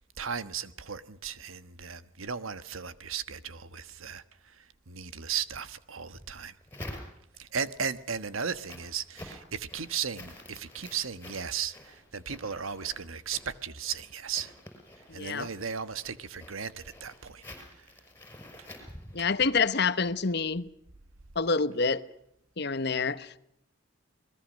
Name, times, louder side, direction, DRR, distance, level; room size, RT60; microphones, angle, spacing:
voice 1, 0.2-6.5 7.4-14.5 15.1-17.4 17.8-17.9, right 7 dB, 90° right, 1.3 m, -36 dB
sound 1, 6.1-7.5 8.0-19.6, left 1 dB, 10° left, 5.3 m, -48 dB
voice 2, 15.1-15.5 19.1-20.7 21.3-22.0 22.6-23.4, left 4 dB, 55° left, 1.0 m, -27 dB
28.0 x 21.0 x 6.4 m
head